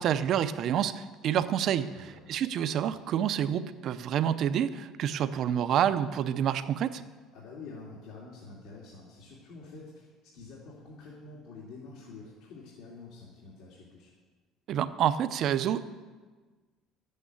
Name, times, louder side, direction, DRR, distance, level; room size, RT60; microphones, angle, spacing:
voice 1, 0.0-1.9 2.3-7.0 14.7-15.9, right 9 dB, 45° right, 12 dB, 0.6 m, -28 dB
voice 2, 1.9-2.3 7.3-14.1, left 3 dB, 70° left, -5 dB, 2.7 m, -47 dB
12.5 x 8.7 x 8.1 m, 1.4 s
cardioid pair, 170°, 0 cm